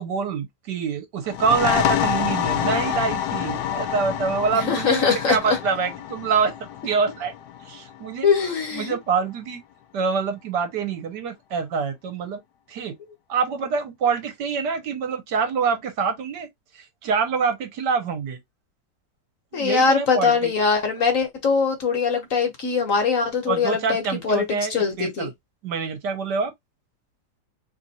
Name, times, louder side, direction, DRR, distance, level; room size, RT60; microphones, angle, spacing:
voice 1, 0.0-6.5 6.8-7.3 7.6-8.3 8.7-9.6 9.9-12.4 12.7-12.9 13.3-16.5 16.7-18.4 19.5-20.5 23.5-25.3 25.6-26.5, right 5 dB, 75° right, 1.6 m, -25 dB
sound 1, 1.3-8.7, left 10 dB, 75° left, 1.2 m, -27 dB
voice 2, 4.5-5.6 8.2-9.0 19.5-25.3, left 5 dB, 55° left, 1.3 m, -22 dB
3.4 x 2.5 x 4.1 m
omnidirectional pair, 1.8 m